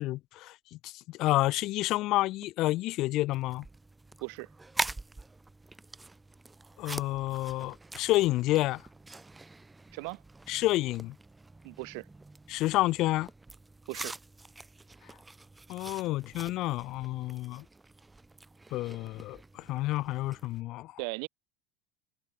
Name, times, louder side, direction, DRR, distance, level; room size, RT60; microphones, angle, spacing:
voice 1, 0.0-3.7 6.8-8.8 10.5-11.2 12.5-13.3 15.7-17.6 18.7-21.0, left 17 dB, 60° left, 0.6 m, -29 dB
sound 1, 3.3-20.6, right 2 dB, 10° right, 3.2 m, -44 dB
voice 2, 11.6-12.1 13.9-14.2 21.0-21.3, right 40 dB or more, 70° right, 1.3 m, -37 dB
supercardioid pair, 95°, 0 cm